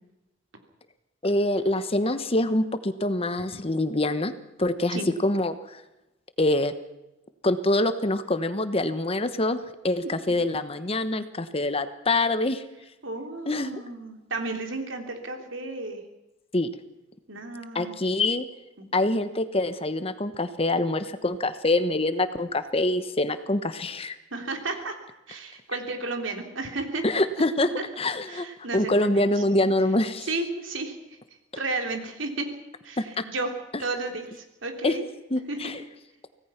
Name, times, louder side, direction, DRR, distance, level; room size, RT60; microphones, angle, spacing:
voice 1, 1.2-4.3 4.6-5.8 6.4-6.7 7.4-9.6 9.8-12.6 13.5-13.8 16.5-16.7 17.7-18.5 18.9-24.2 27.0-27.7 28.0-28.5 28.7-30.3 33.0-33.2 34.8-35.0 35.3-35.8, left 2 dB, 30° left, 11 dB, 1.1 m, -25 dB
voice 2, 13.0-16.0 17.3-18.0 18.8-19.1 24.3-25.0 25.3-27.0 28.3-29.3 30.2-31.0 31.5-32.5 32.8-33.5 33.8-35.0 35.5-35.6, right 2 dB, 80° right, 4 dB, 3.5 m, -33 dB
25.0 x 18.0 x 5.9 m, 0.94 s
head